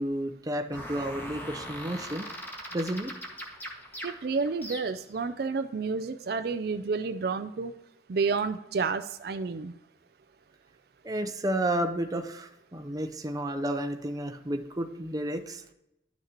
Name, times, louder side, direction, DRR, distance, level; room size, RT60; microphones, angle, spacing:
voice 1, 0.0-2.3 2.7-3.1 11.0-15.6, right 1 dB, 20° right, 5 dB, 0.7 m, -31 dB
sound 1, 0.7-5.2, equal, 10° left, 1.6 m, -40 dB
voice 2, 4.0-7.8 8.1-9.7, right 4 dB, 60° right, 10 dB, 0.4 m, -30 dB
11.5 x 6.5 x 2.9 m, 0.86 s
head